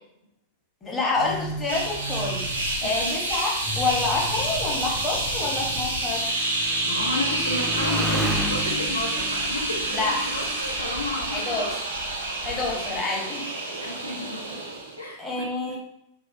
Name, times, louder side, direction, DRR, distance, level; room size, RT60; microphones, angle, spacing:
voice 1, 0.8-6.3 9.9-10.2 10.7-10.8 11.3-11.8 12.4-13.5 15.2-15.8, left 3 dB, 20° left, -3 dB, 0.7 m, -28 dB
alien ship, 1.1-13.0, left 2 dB, 60° left, 0.8 m, -37 dB
sound 1, 1.7-15.0, right 2 dB, 75° right, 0.4 m, -28 dB
Motorcycle, 2.5-11.2 12.0-12.6, equal, 10° right, 0.3 m, -35 dB
voice 2, 2.8-3.2 6.8-10.0 10.3-11.8 12.7-12.8 13.1-13.4 13.8-14.6 15.0-15.5, left 2 dB, 85° left, -1 dB, 0.4 m, -32 dB
2.6 x 2.1 x 2.5 m, 0.81 s
figure-of-eight pair, 90°, 0 cm